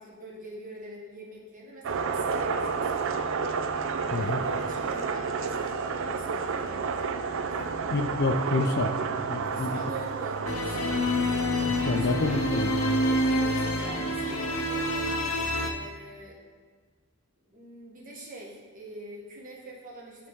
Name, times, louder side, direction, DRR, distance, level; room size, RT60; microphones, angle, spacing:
voice 1, 0.0-3.3 4.1-7.1 7.5-7.8 9.4-11.0 11.8-12.4 13.0-14.9 15.6-16.4 17.5-20.3, right 2 dB, 40° right, -3 dB, 1.5 m, -44 dB
sound 1, 1.8-14.6, right 5 dB, 60° right, 0.4 m, -31 dB
voice 2, 7.9-8.9 9.3-9.8 11.7-12.7, left 3 dB, 45° left, 7 dB, 0.4 m, -28 dB
sound 2, 10.5-15.7, left 1 dB, 70° left, 0.8 m, -27 dB
11.0 x 4.0 x 3.6 m, 1.5 s
head